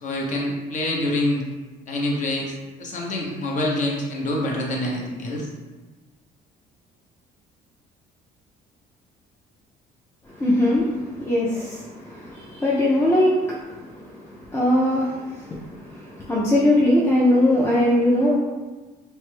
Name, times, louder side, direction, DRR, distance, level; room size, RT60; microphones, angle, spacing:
voice 1, 0.0-1.4 1.9-5.5, left 1 dB, 50° left, -1 dB, 0.7 m, -26 dB
voice 2, 10.3-18.4, left 1 dB, 15° left, -6 dB, 0.4 m, -21 dB
3.1 x 2.1 x 3.2 m, 1.2 s
cardioid pair, 110°, 17 cm